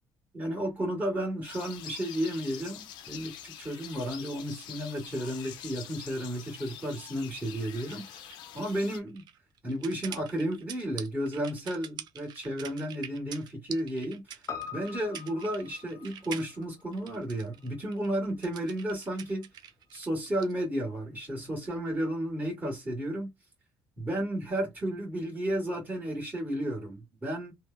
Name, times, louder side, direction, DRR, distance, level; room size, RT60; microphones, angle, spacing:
voice 1, 0.3-9.2 9.6-14.4 14.7-19.5 19.9-23.3 24.0-27.5, right 1 dB, 20° right, 1.5 m, -33 dB
sound 1, 1.4-9.0, left 10 dB, 90° left, 0.5 m, -45 dB
sound 2, 7.8-20.5, right 9 dB, 65° right, 0.4 m, -45 dB
Piano, 14.5-19.0 19.3-19.4, left 7 dB, 40° left, 0.7 m, -45 dB
3.1 x 2.1 x 2.3 m
cardioid pair, 90°, 8 cm